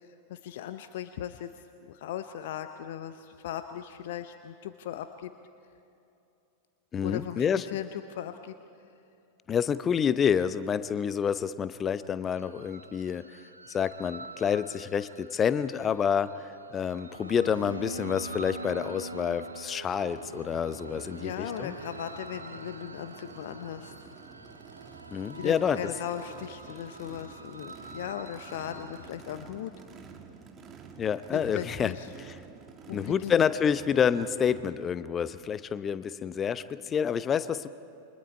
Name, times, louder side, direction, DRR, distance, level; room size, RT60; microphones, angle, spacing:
voice 1, 0.0-5.3 7.0-8.5 21.2-23.9 25.4-29.7 31.3-32.1 32.9-33.4, left 11 dB, 55° left, 10 dB, 0.8 m, -38 dB
voice 2, 6.9-7.6 9.5-13.4 13.7-21.7 25.1-25.9 31.0-31.9 32.2-32.4 32.9-37.7, left 7 dB, 25° left, 15 dB, 0.7 m, -28 dB
sound 1, 12.3-29.1, right 2 dB, 80° right, 0.9 m, -44 dB
Race car auto racing / Idling / Accelerating revving vroom, 20.1-34.6, right 5 dB, 25° right, 2.1 m, -50 dB
28.5 x 24.5 x 4.6 m, 2.7 s
figure-of-eight pair, 90°, 0 cm